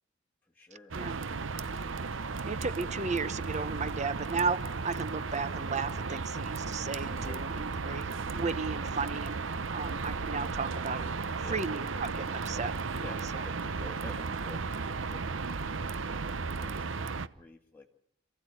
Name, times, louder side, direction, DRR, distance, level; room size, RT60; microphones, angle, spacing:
voice 1, 0.4-1.8 7.1-7.4 8.8-8.9 11.4-11.6 12.9-15.9 16.5-17.9, left 3 dB, 10° left, -1 dB, 1.9 m, -51 dB
sound 1, 0.9-17.3, right 4 dB, 80° right, 0.9 m, -35 dB
sound 2, 2.1-15.0, right 1 dB, 55° right, 1.6 m, -49 dB
voice 2, 2.4-9.3 9.7-11.1 11.5-12.7 13.3-13.4, right 4 dB, 35° right, 15 dB, 1.0 m, -34 dB
27.5 x 15.5 x 9.2 m, 0.69 s
head